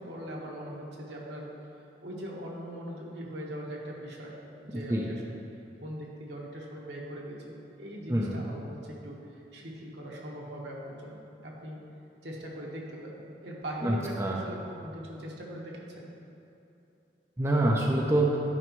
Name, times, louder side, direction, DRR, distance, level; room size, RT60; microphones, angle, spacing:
voice 1, 0.0-1.5 2.0-4.3 4.6-5.2 5.8-11.8 12.2-16.1, equal, 75° right, -3 dB, 1.3 m, -41 dB
voice 2, 13.8-14.5 17.4-18.4, right 1 dB, 15° right, -2 dB, 0.5 m, -26 dB
11.0 x 5.1 x 3.1 m, 2.8 s
head